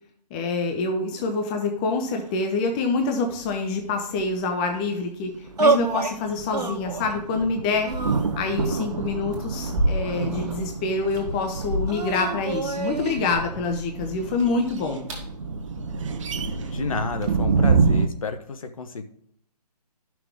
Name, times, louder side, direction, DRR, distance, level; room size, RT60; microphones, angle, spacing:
voice 1, 0.3-7.9 8.4-15.0, left 3 dB, 15° left, 4 dB, 0.5 m, -26 dB
sound 1, 3.4-17.9, equal, 25° right, 2.5 m, -36 dB
sound 2, 5.3-18.1, right 4 dB, 50° right, 0.9 m, -28 dB
sound 3, 5.6-6.2 6.5-7.2 7.8-8.7 9.5-10.5 11.9-13.2, right 3 dB, 75° right, 1.5 m, -27 dB
voice 2, 16.6-19.0, left 4 dB, 55° left, 8 dB, 1.0 m, -31 dB
11.0 x 6.1 x 3.5 m, 0.66 s
figure-of-eight pair, 145°, 21 cm